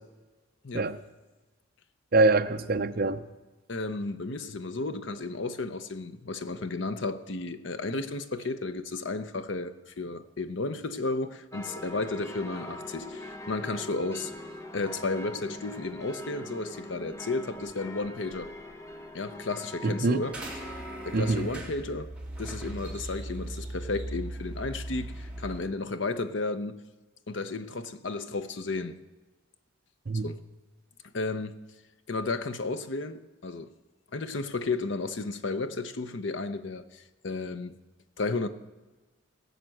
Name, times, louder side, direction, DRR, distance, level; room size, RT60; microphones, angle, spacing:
voice 1, 2.1-3.2 19.8-20.2 21.1-21.5 30.1-30.3, right 3 dB, 45° right, 0.6 m, -24 dB
voice 2, 3.7-14.3 14.7-18.5 19.1-20.4 21.0-22.1 22.4-26.8 27.3-29.0 30.2-30.4 31.1-31.6 32.1-33.7 34.1-37.8 38.2-38.5, left 3 dB, 60° left, 0.8 m, -33 dB
sound 1, 11.5-21.3, left 1 dB, 15° left, 0.8 m, -42 dB
sound 2, 20.3-25.6, right 1 dB, 5° right, 2.0 m, -38 dB
17.5 x 6.6 x 7.7 m
head